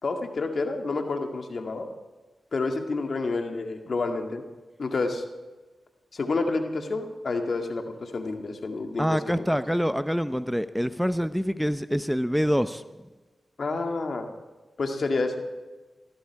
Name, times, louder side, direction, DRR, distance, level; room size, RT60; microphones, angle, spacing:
voice 1, 0.0-1.9 2.5-4.4 4.8-5.2 6.1-9.2 13.6-14.3 14.8-15.3, left 3 dB, 65° left, 5 dB, 2.1 m, -29 dB
voice 2, 9.0-13.1, equal, ahead, 12 dB, 0.8 m, -26 dB
18.5 x 14.5 x 4.8 m, 1.2 s
cardioid pair, 40°, 0 cm